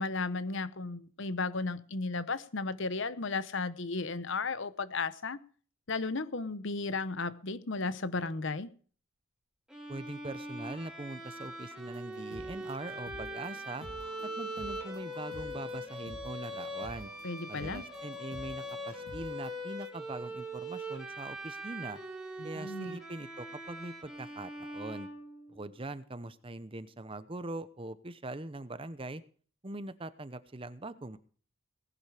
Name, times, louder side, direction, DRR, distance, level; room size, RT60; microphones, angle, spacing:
voice 1, 0.0-5.4 5.9-8.7 17.2-17.8 22.4-23.0, left 3 dB, 60° left, 0.9 m, -34 dB
Bowed string instrument, 9.7-25.8, equal, 5° right, 3.1 m, -42 dB
voice 2, 9.9-13.9 14.2-17.1 17.5-22.0 22.4-25.1 25.5-29.2 29.6-31.2, right 2 dB, 25° right, 0.8 m, -42 dB
sound 1, 11.8-19.6, equal, 85° left, 4.1 m, -51 dB
18.5 x 11.0 x 4.9 m
head